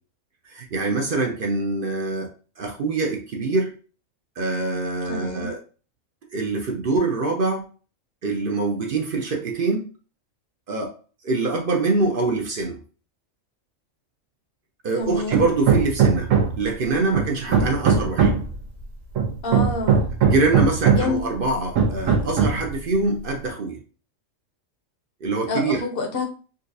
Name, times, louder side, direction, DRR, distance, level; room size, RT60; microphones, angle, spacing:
voice 1, 0.5-2.3 2.6-3.7 4.4-5.6 6.3-7.6 8.2-9.9 10.7-10.9 11.2-12.8 14.8-16.3 16.6-18.3 20.2-23.8 25.2-25.8, right 3 dB, 55° right, 2 dB, 0.6 m, -24 dB
voice 2, 5.1-5.5 15.0-15.4 19.4-20.1 21.0-21.2 25.5-26.2, left 3 dB, 55° left, 4 dB, 0.8 m, -27 dB
Hammer, 15.3-16.7 17.1-18.5 19.2-21.2 21.8-22.7, right 6 dB, 90° right, 1.1 m, -20 dB
3.9 x 2.4 x 2.6 m, 0.37 s
omnidirectional pair, 1.3 m